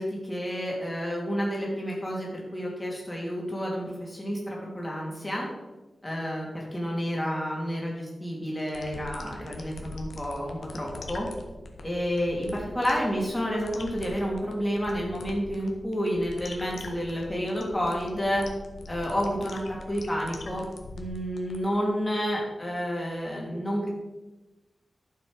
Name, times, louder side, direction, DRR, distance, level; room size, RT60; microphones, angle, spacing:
voice 1, 0.0-5.5 6.0-11.3 11.8-18.4 18.9-20.7 21.0-23.9, equal, 10° left, -3 dB, 3.0 m, -30 dB
sound 1, 8.6-21.6, left 2 dB, 75° left, 1.5 m, -43 dB
12.0 x 7.5 x 5.2 m, 1.1 s
wide cardioid pair, 170°, 0 cm